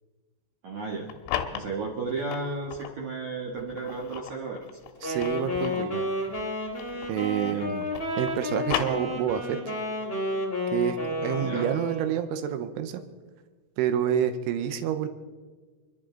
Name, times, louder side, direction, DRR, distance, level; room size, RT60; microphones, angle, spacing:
voice 1, 0.6-1.1 1.5-4.8 7.4-7.7 11.4-11.7, right 3 dB, 65° right, -2 dB, 1.8 m, -33 dB
sound 1, 0.9-3.0 3.6-7.3 7.6-9.6, left 10 dB, 85° left, 3.5 m, -36 dB
Wind instrument woodwind instrument, 5.0-12.2, left 1 dB, 25° left, 1.4 m, -31 dB
voice 2, 5.0-6.1 7.1-7.9 8.2-9.8 10.7-13.0 13.8-15.1, right 9 dB, 90° right, 9 dB, 3.4 m, -28 dB
29.5 x 11.5 x 3.9 m, 1.4 s
omnidirectional pair, 5.5 m